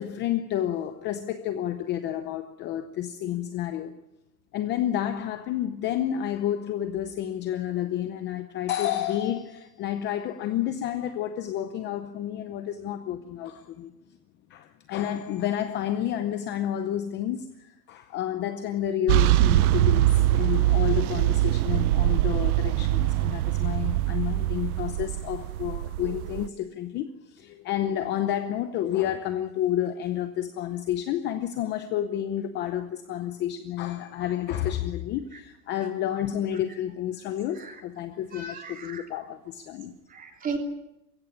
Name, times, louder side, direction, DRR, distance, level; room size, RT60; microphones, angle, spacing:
voice 1, 0.0-3.9 4.5-13.9 14.5-39.9, left 11 dB, 25° left, 0.7 m, -30 dB
sound 1, 19.1-26.5, right 15 dB, 65° right, 0.7 m, -23 dB
voice 2, 38.3-39.1 39.8-40.6, right 4 dB, 15° right, 3.1 m, -36 dB
22.5 x 16.0 x 9.6 m
supercardioid pair, 160°, 47 cm